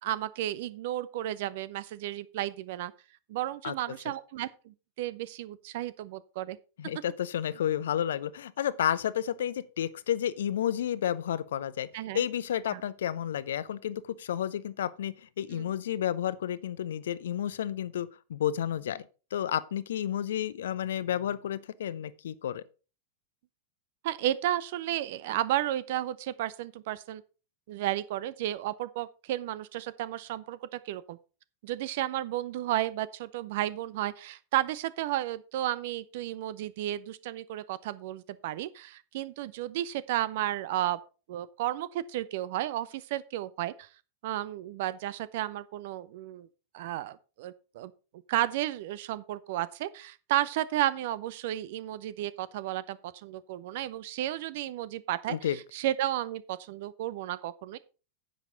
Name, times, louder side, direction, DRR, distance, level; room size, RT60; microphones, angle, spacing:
voice 1, 0.0-2.9 3.3-6.6 11.9-12.2 12.7-12.8 15.5-15.7 24.0-27.2 27.7-31.2 31.6-41.0 41.3-43.9 44.2-46.5 46.7-47.9 48.3-57.8, right 13 dB, 50° right, 0.7 m, -33 dB
voice 2, 6.8-11.9 12.1-19.0 19.3-22.6 55.3-55.6, left 10 dB, 60° left, 0.6 m, -31 dB
10.0 x 7.9 x 3.9 m
figure-of-eight pair, 90°, 0 cm